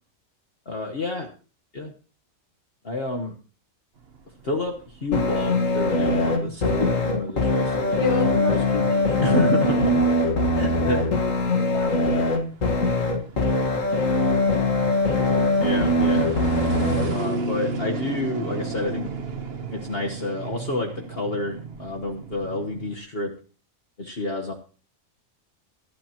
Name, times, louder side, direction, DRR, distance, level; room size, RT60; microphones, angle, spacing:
voice 1, 0.6-1.3 1.7-1.9 2.8-3.3 4.4-8.8 9.2-10.0 10.6-11.0 15.6-16.3 17.1-19.1 19.7-23.3 24.0-24.5, left 2 dB, 45° left, 1 dB, 1.5 m, -28 dB
sound 1, 4.0-23.0, right 3 dB, 45° right, 1.3 m, -35 dB
sound 2, 5.1-17.1, left 2 dB, 65° left, 2.1 m, -22 dB
voice 2, 8.0-11.0 11.4-12.3, left 4 dB, 25° left, 5 dB, 1.9 m, -32 dB
19.0 x 12.0 x 3.0 m, 0.37 s
omnidirectional pair, 1.4 m